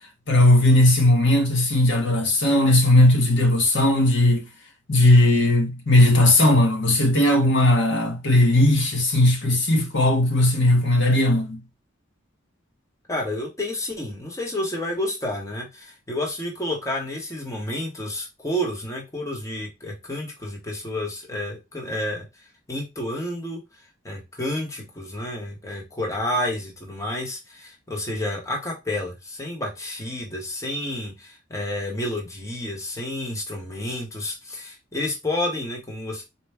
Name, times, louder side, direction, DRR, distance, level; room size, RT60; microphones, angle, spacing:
voice 1, 0.3-4.4 4.9-11.6, left 1 dB, 65° left, 1.0 m, -18 dB
voice 2, 13.1-22.2 22.7-23.6 24.0-36.2, left 1 dB, 15° left, 0.9 m, -30 dB
4.2 x 2.2 x 3.3 m
head